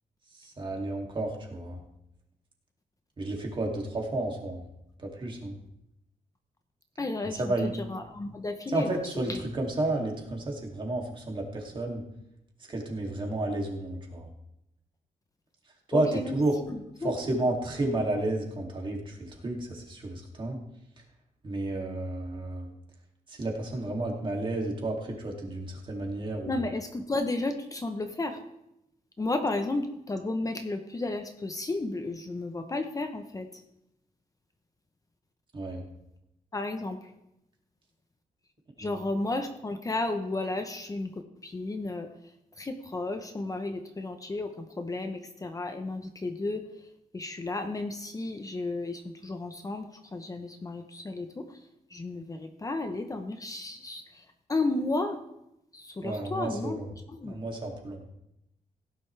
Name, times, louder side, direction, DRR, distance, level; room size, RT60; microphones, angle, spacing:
voice 1, 0.4-1.8 3.2-4.6 5.0-5.6 7.4-7.7 8.7-12.0 12.7-14.3 15.9-16.5 17.0-20.6 21.4-22.7 23.3-26.6 35.5-35.9 38.8-38.9 56.0-56.9 57.2-58.0, right 2 dB, 35° right, 0 dB, 2.7 m, -31 dB
voice 2, 7.0-9.0 9.3-9.4 15.9-16.4 16.7-17.1 26.5-28.4 29.2-33.6 36.5-37.1 38.8-41.1 41.4-42.1 42.6-46.7 47.1-51.6 51.9-55.2 55.7-56.8 57.1-57.4, left 2 dB, 25° left, 6 dB, 0.9 m, -33 dB
16.5 x 10.5 x 3.4 m, 0.83 s
wide cardioid pair, 135°, 14 cm